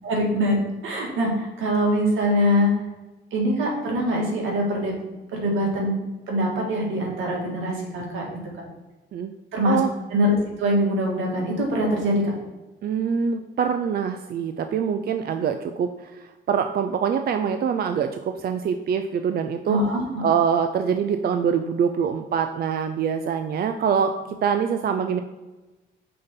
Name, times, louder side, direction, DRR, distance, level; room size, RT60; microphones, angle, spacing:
voice 1, 0.0-2.7 3.3-5.0 5.3-6.0 6.3-8.4 9.5-9.8 10.1-12.3 19.7-20.3, equal, 80° right, -1 dB, 1.9 m, -23 dB
voice 2, 12.8-19.8 20.2-25.2, right 7 dB, 50° right, 7 dB, 0.4 m, -24 dB
5.6 x 4.0 x 5.2 m, 1.2 s
cardioid pair, 90°, 20 cm